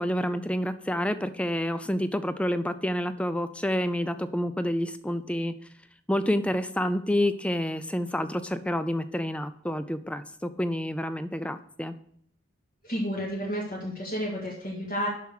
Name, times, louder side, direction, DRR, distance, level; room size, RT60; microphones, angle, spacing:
voice 1, 0.0-5.5 6.1-11.9, equal, 5° left, 11 dB, 0.4 m, -28 dB
voice 2, 12.8-15.1, equal, 45° left, -4 dB, 1.9 m, -31 dB
7.0 x 5.9 x 6.4 m, 0.65 s
head